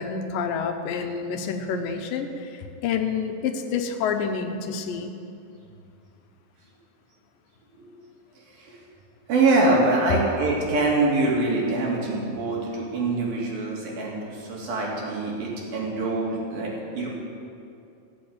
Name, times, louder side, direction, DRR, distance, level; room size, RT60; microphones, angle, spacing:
voice 1, 0.0-5.1, left 6 dB, 80° left, 5 dB, 2.6 m, -28 dB
voice 2, 9.3-17.1, right 2 dB, 90° right, -3 dB, 4.4 m, -24 dB
16.5 x 7.8 x 8.7 m, 2.6 s
omnidirectional pair, 4.0 m